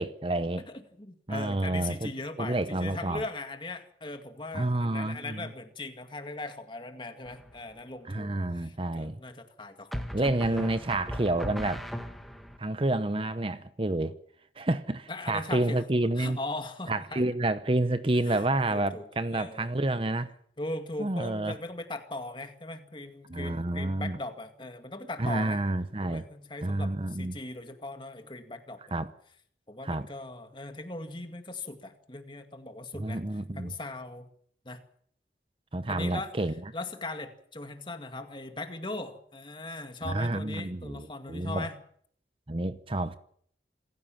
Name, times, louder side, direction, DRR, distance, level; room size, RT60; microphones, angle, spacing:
voice 1, 0.0-0.7 1.3-2.1 2.4-3.2 4.5-5.5 8.1-9.2 10.1-11.9 12.6-14.1 14.6-16.4 16.9-20.3 21.0-21.6 23.3-24.2 25.2-26.2 26.6-27.4 28.9-29.1 29.8-30.1 33.0-33.7 35.7-36.5 40.1-41.7 42.5-43.2, right 2 dB, 30° right, 0.8 m, -29 dB
voice 2, 0.7-10.7 15.1-15.8 16.2-17.2 18.1-19.7 20.6-25.6 26.0-28.8 29.7-34.3 34.7-34.8 35.9-36.3 36.7-41.8, left 2 dB, 25° left, 2.1 m, -39 dB
sound 1, 7.3-7.8 9.9-12.6, equal, ahead, 1.7 m, -38 dB
27.5 x 15.0 x 7.4 m
head